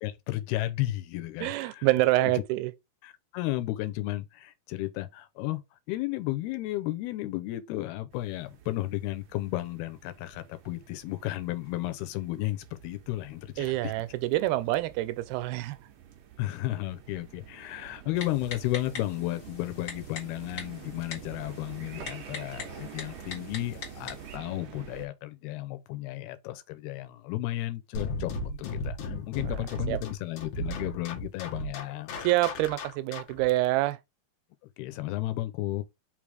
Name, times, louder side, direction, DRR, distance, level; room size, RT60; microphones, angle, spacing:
voice 1, 0.0-1.9 2.2-2.3 3.0-13.9 16.4-32.1 34.8-35.8, left 16 dB, 85° left, 2.8 m, -33 dB
voice 2, 1.4-2.7 13.6-15.8 29.9-30.0 32.2-34.0, right 17 dB, 90° right, 2.6 m, -26 dB
sound 1, 8.1-25.1, right 9 dB, 75° right, 1.6 m, -48 dB
Typing, 18.2-24.4, left 6 dB, 45° left, 2.2 m, -43 dB
sound 2, 27.9-33.5, left 2 dB, 60° left, 2.4 m, -35 dB
5.9 x 3.5 x 4.9 m
omnidirectional pair, 4.5 m